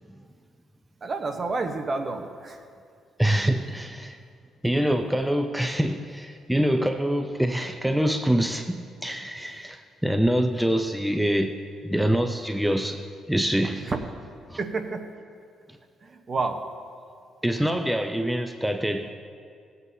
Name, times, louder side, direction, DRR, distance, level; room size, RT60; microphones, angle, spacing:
voice 1, 1.0-2.6 13.9-14.0 14.6-15.1 16.0-16.6, right 3 dB, 40° right, 5 dB, 1.0 m, -29 dB
voice 2, 3.2-4.2 4.6-8.8 9.0-11.6 11.8-13.9 14.5-14.6 17.4-19.1, right 1 dB, 5° right, 5 dB, 0.5 m, -25 dB
18.0 x 8.1 x 2.7 m, 2.3 s
cardioid pair, 90°, 0 cm